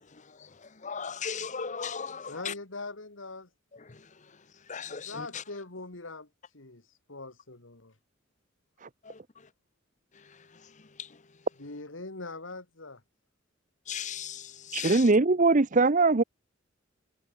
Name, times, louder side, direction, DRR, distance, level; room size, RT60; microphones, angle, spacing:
voice 1, 0.1-2.5 3.7-4.1 4.7-5.4 9.0-9.2 10.1-11.2 13.9-15.1, left 6 dB, 40° left, 1.0 m, -38 dB
voice 2, 2.3-3.5 4.9-8.0 11.6-13.0, left 3 dB, 85° left, 2.7 m, -42 dB
voice 3, 14.7-16.2, right 3 dB, 40° right, 0.8 m, -21 dB
head